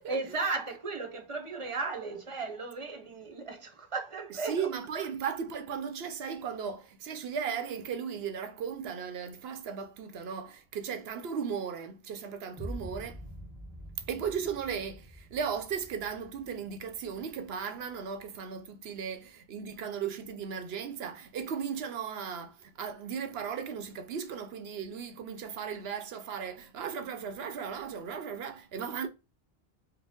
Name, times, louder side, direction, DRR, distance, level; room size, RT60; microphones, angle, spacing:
voice 1, 0.1-4.7, right 3 dB, 35° right, 0.8 m, -35 dB
voice 2, 4.3-13.2 14.1-29.1, right 7 dB, 75° right, 0.9 m, -36 dB
sound 1, 12.6-18.6, equal, 20° left, 0.9 m, -46 dB
4.8 x 2.1 x 3.5 m
omnidirectional pair, 1.0 m